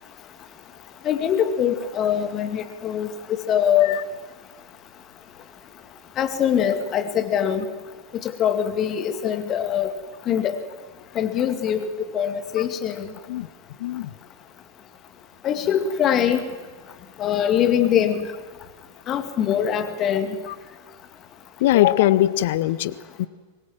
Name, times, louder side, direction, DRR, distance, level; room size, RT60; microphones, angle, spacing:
voice 1, 1.0-4.0 6.2-7.6 8.2-9.9 10.3-10.6 11.1-13.1 15.4-16.5 17.2-18.3 19.1-20.4, left 9 dB, 30° left, 8 dB, 2.3 m, -23 dB
voice 2, 13.8-14.1 21.6-23.3, left 14 dB, 55° left, 18 dB, 0.9 m, -21 dB
24.5 x 21.0 x 7.6 m, 1.4 s
figure-of-eight pair, 90°, 0 cm